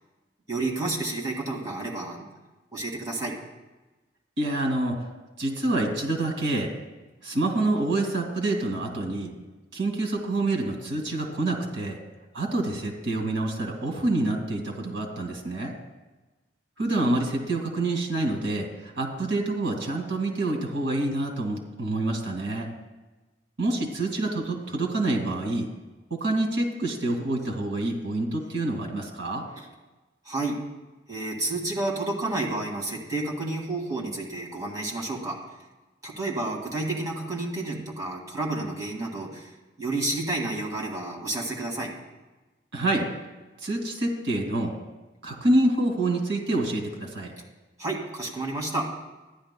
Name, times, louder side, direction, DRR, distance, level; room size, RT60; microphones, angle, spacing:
voice 1, 0.5-2.3 2.7-3.3 29.6-29.7 30.2-30.6 31.1-35.4 36.0-41.9 47.8-48.9, right 2 dB, 20° right, -3 dB, 2.1 m, -30 dB
voice 2, 4.4-5.1 5.4-6.7 7.2-9.3 9.7-12.0 12.3-15.7 16.8-22.7 23.6-25.7 26.1-29.4 42.7-43.1 43.6-44.7 45.2-47.3, right 2 dB, 80° right, 1 dB, 2.3 m, -27 dB
14.5 x 10.5 x 2.2 m, 1.1 s
head